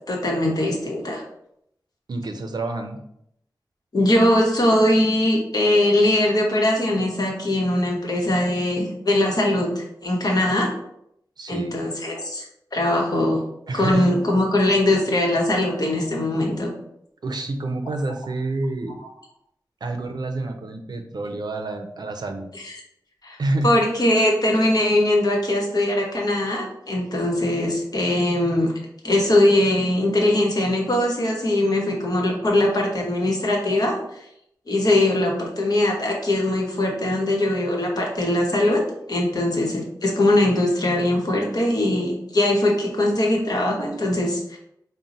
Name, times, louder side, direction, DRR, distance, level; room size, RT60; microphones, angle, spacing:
voice 1, 0.1-1.2 3.9-10.7 11.5-12.4 12.7-13.4 13.7-16.7 22.6-22.7 23.2-23.4 23.6-28.7 29.0-34.0 34.7-38.8 39.1-44.6, left 1 dB, 55° left, -1 dB, 1.0 m, -21 dB
voice 2, 2.1-3.0 11.4-11.7 13.7-14.1 17.2-19.0 19.8-22.5 23.4-23.7, right 2 dB, 65° right, 5 dB, 0.5 m, -28 dB
3.8 x 2.2 x 4.1 m, 0.75 s
cardioid pair, 55°, 8 cm